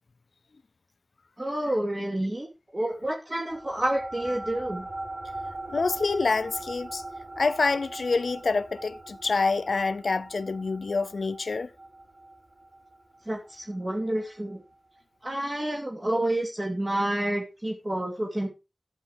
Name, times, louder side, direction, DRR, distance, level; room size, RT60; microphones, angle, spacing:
voice 1, 1.4-2.5 2.7-4.9 13.3-14.6 15.2-18.5, right 1 dB, 30° right, 2.6 m, -29 dB
sound 1, 3.5-14.3, right 2 dB, 65° right, 7.6 m, -41 dB
voice 2, 5.7-7.0 7.4-11.7, left 4 dB, 85° left, 0.5 m, -27 dB
11.5 x 8.7 x 4.8 m
wide cardioid pair, 60°, 0 cm